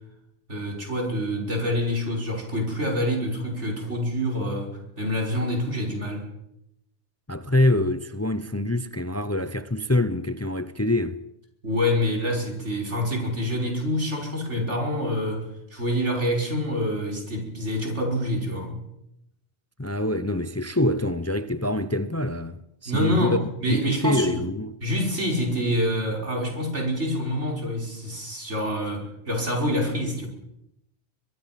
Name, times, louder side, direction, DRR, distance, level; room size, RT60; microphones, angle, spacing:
voice 1, 0.5-6.3 11.6-15.5 15.7-18.8 22.9-24.4 24.8-30.3, equal, 85° right, 5.7 m, -26 dB
voice 2, 7.3-11.2 19.8-23.4 23.7-24.7, left 1 dB, 15° left, 0.7 m, -25 dB
23.5 x 23.0 x 5.9 m
omnidirectional pair, 1.2 m